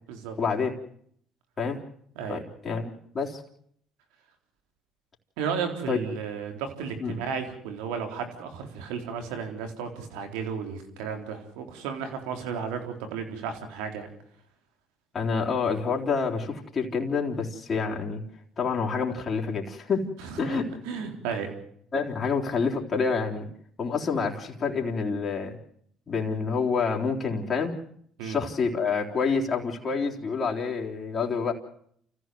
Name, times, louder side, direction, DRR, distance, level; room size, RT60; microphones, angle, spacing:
voice 1, 0.4-0.7 1.6-1.8 2.3-3.4 5.9-6.0 7.0-7.1 15.1-18.2 18.6-20.1 20.4-20.7 21.9-23.5 23.8-25.6 26.1-27.7 28.2-31.5, left 5 dB, 40° left, -1 dB, 3.8 m, -28 dB
voice 2, 5.4-14.1 20.2-21.5 28.2-28.4, right 6 dB, 85° right, 6 dB, 3.9 m, -34 dB
29.0 x 15.0 x 7.9 m, 0.67 s
supercardioid pair, 75°, 0 cm